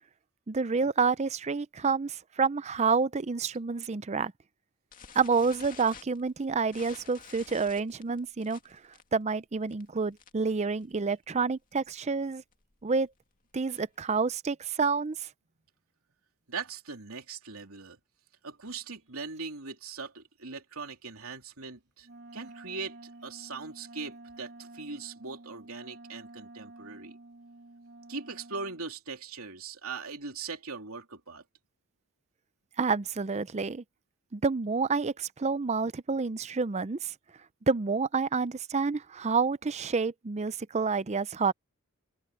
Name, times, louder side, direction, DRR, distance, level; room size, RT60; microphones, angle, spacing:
voice 1, 0.5-4.3 5.1-8.8 9.1-12.4 12.8-13.1 13.5-15.3 32.8-33.8 34.3-37.1 37.7-41.5, right 4 dB, 30° right, 0.5 m, -28 dB
sound 1, 4.9-10.5 10.8-11.1 11.4-11.5 11.8-12.0 12.5-14.1, left 6 dB, 40° left, 2.3 m, -51 dB
voice 2, 16.5-18.0 18.4-22.1 22.3-27.2 28.1-31.4, right 4 dB, 70° right, 3.3 m, -40 dB
Wind instrument woodwind instrument, 22.0-28.8, right 2 dB, 50° right, 3.6 m, -50 dB
open air
head